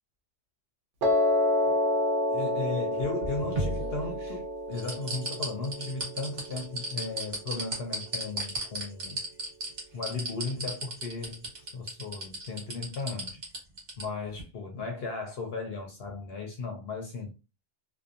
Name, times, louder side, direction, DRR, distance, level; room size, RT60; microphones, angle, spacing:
Piano, 1.0-7.2, left 1 dB, 80° right, 1.0 m, -29 dB
voice 1, 2.3-9.2 9.9-13.4 14.0-17.3, left 3 dB, 65° left, 0.7 m, -36 dB
sound 1, 3.0-4.3 4.8-14.0 14.4-14.5, right 1 dB, 50° right, 1.1 m, -34 dB
2.7 x 2.2 x 2.4 m
omnidirectional pair, 1.2 m